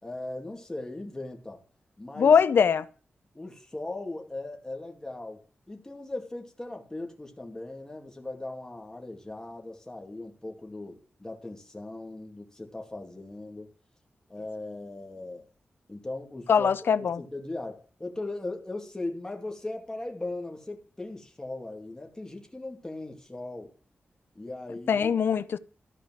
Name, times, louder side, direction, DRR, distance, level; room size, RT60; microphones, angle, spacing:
voice 1, 0.0-1.6 2.0-2.4 3.3-13.7 14.3-15.5 15.9-23.7 24.3-25.1, left 2 dB, 15° left, 2.4 m, -38 dB
voice 2, 2.2-2.9 16.5-17.2 24.9-25.6, left 6 dB, 80° left, 0.6 m, -22 dB
14.0 x 5.0 x 7.6 m
wide cardioid pair, 95°, 4 cm